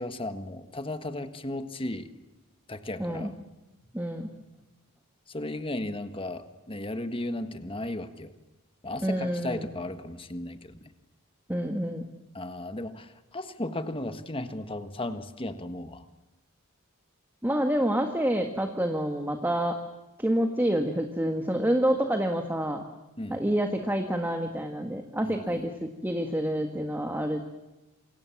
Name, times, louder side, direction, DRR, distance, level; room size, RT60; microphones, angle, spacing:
voice 1, 0.0-2.1 2.7-3.3 5.3-8.3 8.8-10.9 12.3-16.0 23.2-23.4 25.2-25.7, left 1 dB, 25° left, 9 dB, 1.5 m, -35 dB
voice 2, 3.9-4.3 9.0-9.6 11.5-12.0 17.4-19.8 20.2-22.8 23.3-27.4, right 1 dB, 10° right, 5 dB, 1.7 m, -28 dB
28.5 x 26.5 x 7.2 m, 1.1 s
head